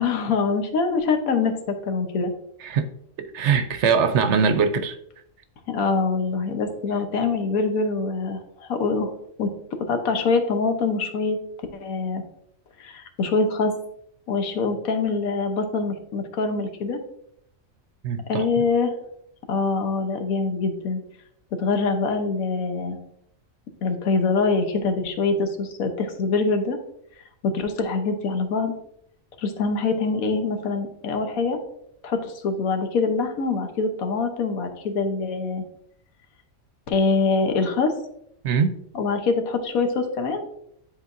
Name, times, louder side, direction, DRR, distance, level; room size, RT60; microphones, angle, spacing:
voice 1, 0.0-2.3 5.7-9.1 9.4-9.5 9.9-11.4 11.7-12.2 12.8-13.7 14.3-17.0 18.3-18.9 19.5-21.0 21.6-23.0 23.8-26.8 27.4-28.7 29.4-31.6 32.0-35.6 36.9-37.9 38.9-40.4, left 4 dB, 85° left, 6 dB, 1.3 m, -24 dB
voice 2, 3.2-5.0 18.0-18.5 38.4-38.7, right 6 dB, 65° right, 9 dB, 0.8 m, -22 dB
10.0 x 3.9 x 2.5 m, 0.72 s
omnidirectional pair, 1.4 m